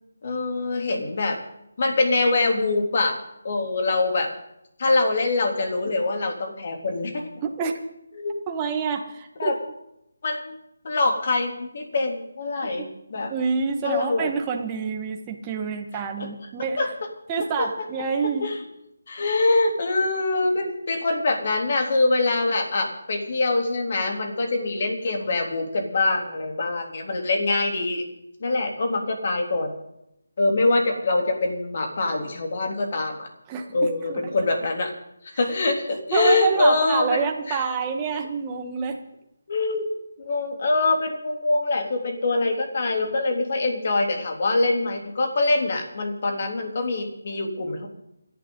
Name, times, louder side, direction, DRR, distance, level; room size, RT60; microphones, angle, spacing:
voice 1, 0.2-1.4 1.8-3.2 3.4-4.3 4.8-7.3 8.2-8.3 9.4-9.5 10.2-10.5 10.8-13.3 13.8-14.3 16.8-16.9 17.6-17.7 18.4-18.6 19.1-28.0 28.4-29.7 30.4-33.3 33.7-34.9 35.4-37.6 39.5-39.9 40.2-47.9, left 2 dB, 45° left, 3 dB, 3.3 m, -24 dB
voice 2, 7.4-7.8 8.5-9.6 12.8-12.9 13.3-16.8 17.3-18.5 33.5-34.3 36.1-39.0, right 6 dB, 15° right, 2 dB, 1.6 m, -27 dB
29.0 x 11.0 x 4.0 m, 0.85 s
figure-of-eight pair, 165°, 0 cm